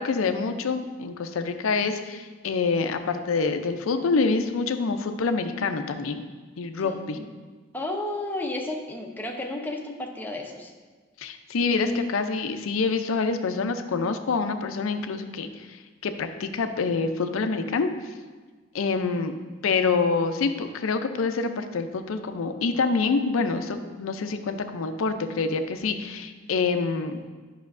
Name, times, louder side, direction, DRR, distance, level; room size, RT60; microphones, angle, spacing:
voice 1, 0.0-6.3 6.6-7.2 11.2-17.9 18.7-19.3 19.6-27.2, left 4 dB, 70° left, 8 dB, 0.5 m, -26 dB
voice 2, 6.8-7.3 7.7-10.7, left 2 dB, 10° left, 0 dB, 0.6 m, -32 dB
9.4 x 5.6 x 2.5 m, 1.4 s
head